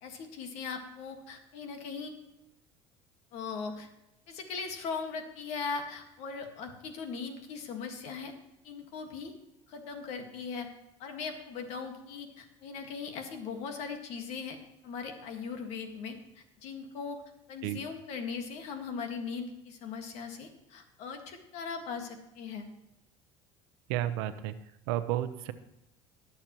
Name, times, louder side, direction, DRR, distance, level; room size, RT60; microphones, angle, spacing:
voice 1, 0.0-2.1 3.3-3.9 4.3-8.3 8.6-9.3 9.7-10.7 11.0-14.6 14.8-17.2 17.5-22.7, left 5 dB, 65° left, 5 dB, 1.8 m, -39 dB
voice 2, 23.9-24.5 24.9-25.5, right 13 dB, 90° right, 11 dB, 0.8 m, -31 dB
20.5 x 7.2 x 3.1 m, 0.90 s
cardioid pair, 125°, 12 cm